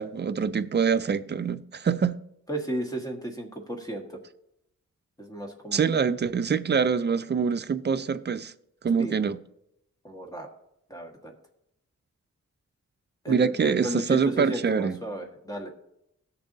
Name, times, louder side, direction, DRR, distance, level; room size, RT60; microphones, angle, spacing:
voice 1, 0.0-2.2 5.7-8.5 8.8-9.4 13.3-15.0, right 6 dB, 35° right, 0.5 m, -25 dB
voice 2, 2.5-4.2 5.2-5.9 9.0-9.2 10.0-10.5 10.9-11.3 13.2-15.7, right 1 dB, 10° left, 1.5 m, -34 dB
17.5 x 6.9 x 2.7 m
wide cardioid pair, 115°, 31 cm